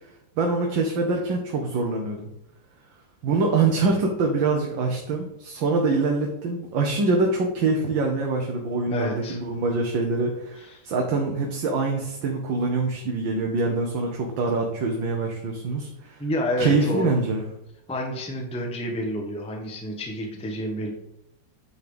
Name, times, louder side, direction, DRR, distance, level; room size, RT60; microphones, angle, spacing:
voice 1, 0.4-2.3 3.2-16.2 16.6-17.4, right 3 dB, 80° right, 1 dB, 1.7 m, -24 dB
voice 2, 8.9-9.4 10.6-10.8 16.2-17.1 17.9-20.9, left 1 dB, 5° left, 1 dB, 0.8 m, -29 dB
9.5 x 4.0 x 5.2 m, 0.84 s
omnidirectional pair, 2.1 m